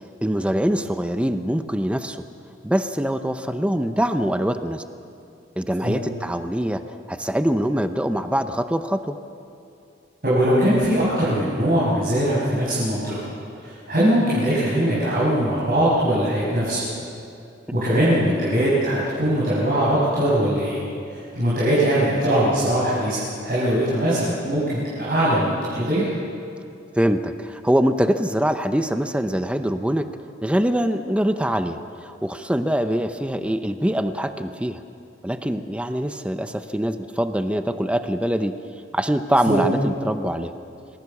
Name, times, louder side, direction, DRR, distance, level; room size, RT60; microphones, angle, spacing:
voice 1, 0.2-2.2 2.6-4.8 5.6-6.8 7.1-9.1 27.0-30.1 30.4-34.8 35.2-38.6 38.9-40.5, equal, 5° right, 8 dB, 0.7 m, -23 dB
voice 2, 10.2-13.2 13.6-16.9 17.7-20.8 21.3-26.1 39.5-39.6, right 1 dB, 50° right, -9 dB, 6.8 m, -21 dB
27.5 x 20.0 x 7.2 m, 2.6 s
head